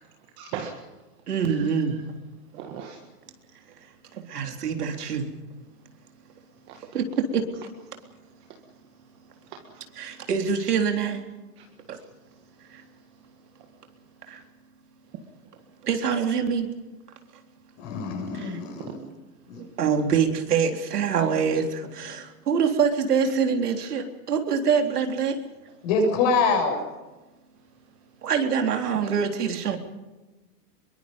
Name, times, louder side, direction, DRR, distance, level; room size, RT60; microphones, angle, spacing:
voice 1, 0.4-0.8 1.5-2.0 2.6-3.0 6.7-6.8 9.5-9.9 11.6-11.7 11.9-12.1 18.9-19.0 28.9-29.1, right 8 dB, 25° right, 3 dB, 1.8 m, -39 dB
voice 2, 1.3-2.0 4.1-5.3 6.9-7.4 10.0-11.2 11.9-12.0 12.7-12.8 14.3-14.4 15.8-16.7 18.3-18.6 19.5-25.4 28.2-29.8, right 6 dB, 80° right, 4 dB, 3.8 m, -25 dB
voice 3, 17.8-19.0 19.5-19.6 25.8-26.8, left 4 dB, 30° left, 3 dB, 7.0 m, -24 dB
25.5 x 23.0 x 5.4 m, 1.2 s
hypercardioid pair, 165°, 46 cm